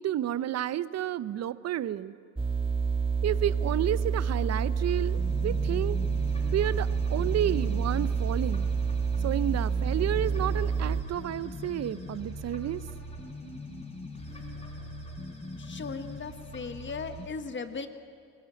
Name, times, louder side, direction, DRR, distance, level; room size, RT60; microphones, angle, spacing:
voice 1, 0.0-2.1 3.2-6.0 6.5-8.7 9.2-12.8, right 11 dB, 60° right, 17 dB, 0.7 m, -31 dB
sound 1, 2.4-11.0, right 5 dB, 15° right, 1.8 m, -28 dB
sound 2, 4.9-17.3, left 2 dB, 20° left, 5.0 m, -41 dB
voice 2, 15.6-17.9, left 4 dB, 40° left, 9 dB, 1.4 m, -37 dB
20.5 x 19.0 x 9.1 m, 2.3 s
cardioid pair, 90°, 30 cm